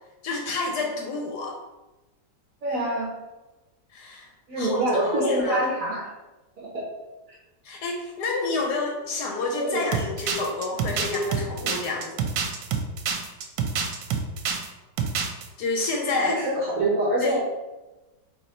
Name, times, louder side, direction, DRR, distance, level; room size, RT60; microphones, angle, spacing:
voice 1, 0.2-1.6 3.9-4.3 4.6-5.7 7.6-12.2 15.6-16.4 17.2-17.4, left 3 dB, 70° left, 1 dB, 1.1 m, -29 dB
voice 2, 2.6-3.1 4.5-6.1 6.6-6.8 9.6-9.9 11.6-11.8 16.3-17.4, right 1 dB, 55° right, -5 dB, 1.2 m, -25 dB
sound 1, 9.9-14.7 15.0-15.5, right 6 dB, 85° right, 1.3 m, -27 dB
4.5 x 2.7 x 4.2 m, 1.1 s
omnidirectional pair, 1.9 m